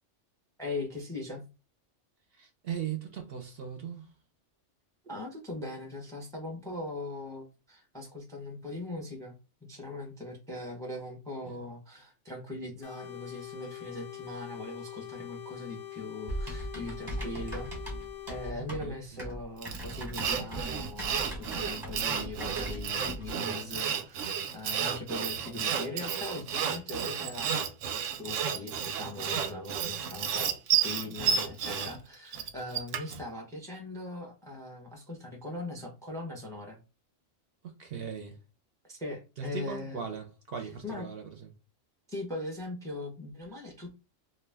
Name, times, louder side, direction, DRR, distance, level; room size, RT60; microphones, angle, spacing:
voice 1, 0.6-1.4 5.0-9.3 9.7-17.7 18.3-27.7 28.2-36.8 38.9-40.0 40.6-41.1 42.1-44.0, left 2 dB, 5° left, 0.5 m, -40 dB
voice 2, 2.3-4.1 11.4-11.6 18.5-19.0 37.8-38.4 39.4-41.2, right 7 dB, 60° right, 0.7 m, -38 dB
sound 1, 12.8-18.5, left 14 dB, 60° left, 0.6 m, -44 dB
Typing, 16.3-23.3, right 1 dB, 20° right, 0.9 m, -39 dB
Sawing, 19.6-33.2, right 8 dB, 90° right, 0.9 m, -32 dB
2.4 x 2.2 x 3.3 m
omnidirectional pair, 1.3 m